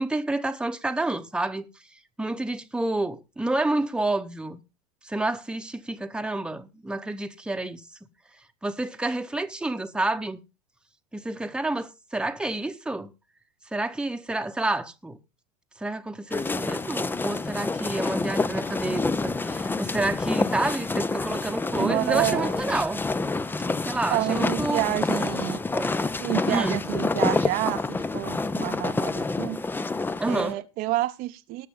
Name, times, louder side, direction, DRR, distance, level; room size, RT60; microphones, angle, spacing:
voice 1, 0.0-1.7 2.2-4.6 5.0-7.8 8.6-10.4 11.1-13.1 13.7-15.2 15.8-23.1 23.6-24.9 25.7-26.0 26.4-26.8 30.2-30.6, right 2 dB, 5° right, 1.0 m, -29 dB
sound 1, 16.3-30.5, left 3 dB, 10° left, 0.6 m, -28 dB
voice 2, 21.8-22.5 24.1-25.6 26.2-29.6 30.3-31.7, right 17 dB, 50° right, 0.8 m, -29 dB
19.0 x 6.6 x 3.7 m
hypercardioid pair, 80°, 19 cm